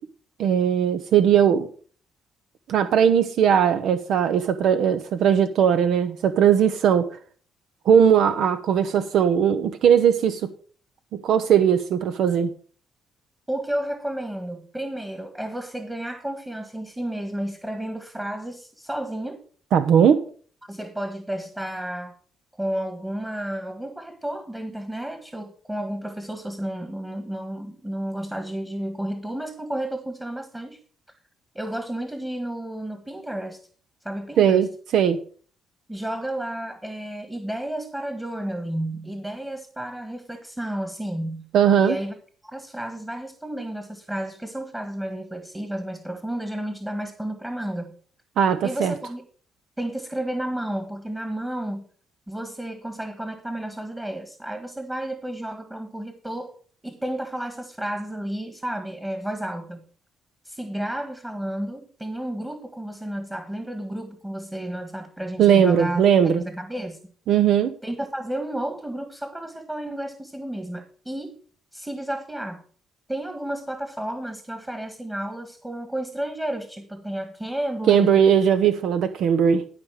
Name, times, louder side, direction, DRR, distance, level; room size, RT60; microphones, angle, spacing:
voice 1, 0.4-1.7 2.7-7.1 7.9-10.5 11.1-12.5 19.7-20.2 34.4-34.7 34.9-35.2 41.5-42.0 48.4-48.9 65.4-66.4 67.3-67.7 77.9-79.6, right 8 dB, 75° right, 11 dB, 0.7 m, -19 dB
voice 2, 13.5-19.4 20.7-22.1 22.6-30.8 31.5-33.6 34.0-34.7 35.9-41.4 41.8-42.1 42.4-47.9 48.6-49.2 49.8-51.9 52.3-56.6 56.8-59.8 60.4-66.0 66.4-67.0 67.8-71.3 71.7-72.6 73.1-78.2, right 1 dB, 10° right, 7 dB, 1.6 m, -32 dB
13.0 x 5.1 x 6.4 m, 0.44 s
cardioid pair, 90°, 0 cm